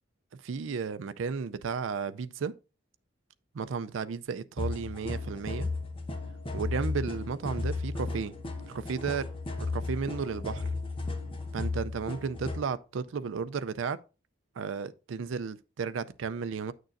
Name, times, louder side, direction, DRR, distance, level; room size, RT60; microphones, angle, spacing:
voice 1, 0.4-2.5 3.5-5.7 6.5-8.3 8.7-9.3 9.7-10.7 11.5-14.0 14.6-16.7, right 5 dB, 80° right, 0.4 m, -33 dB
sound 1, 4.6-12.6, left 3 dB, 30° left, 0.9 m, -34 dB
9.0 x 6.5 x 2.5 m
head